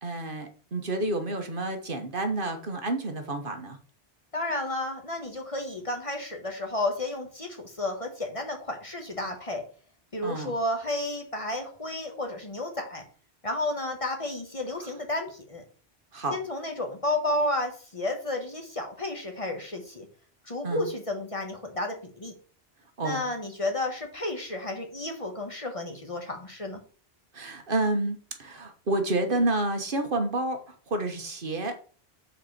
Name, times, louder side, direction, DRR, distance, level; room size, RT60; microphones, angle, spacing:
voice 1, 0.0-3.8 10.2-10.5 16.1-16.4 20.6-20.9 23.0-23.2 27.3-30.6 30.9-31.8, right 2 dB, 55° right, 6 dB, 1.4 m, -29 dB
voice 2, 4.3-9.6 10.1-13.0 13.4-15.6 16.3-20.0 20.4-22.3 23.0-26.8, left 1 dB, 30° left, 3 dB, 1.5 m, -32 dB
6.6 x 4.5 x 6.6 m, 0.42 s
omnidirectional pair, 1.1 m